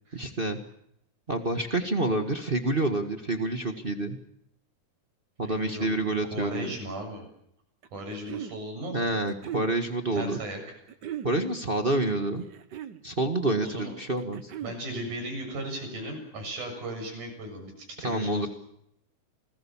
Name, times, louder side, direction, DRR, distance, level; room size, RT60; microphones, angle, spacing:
voice 1, 0.1-0.6 1.3-4.2 5.4-6.7 8.9-10.4 11.2-12.4 13.0-14.5 18.0-18.5, right 2 dB, 25° right, 6 dB, 1.2 m, -28 dB
voice 2, 5.4-6.0 6.3-7.3 7.9-9.1 10.1-10.6 13.6-13.9 14.6-18.5, right 1 dB, 85° right, 3 dB, 8.8 m, -36 dB
sound 1, 7.8-8.6 9.3-9.7 10.9-11.3 12.4-13.0 14.2-14.8, right 10 dB, 65° right, 1.1 m, -38 dB
28.5 x 20.0 x 7.3 m, 0.74 s
omnidirectional pair, 3.5 m